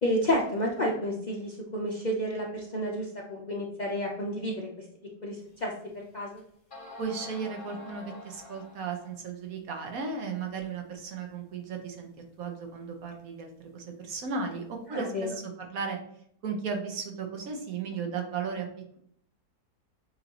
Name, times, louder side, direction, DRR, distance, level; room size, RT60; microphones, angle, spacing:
voice 1, 0.0-4.7 5.2-6.4 14.9-15.4, equal, 80° left, -3 dB, 0.4 m, -31 dB
sound 1, 5.6-5.7 6.4-6.5 6.7-9.2, left 2 dB, 30° left, 1.7 m, -46 dB
voice 2, 7.0-12.1 12.4-16.0 16.4-18.7, right 5 dB, 65° right, 3 dB, 1.2 m, -35 dB
6.8 x 2.7 x 2.9 m, 0.68 s
omnidirectional pair, 1.7 m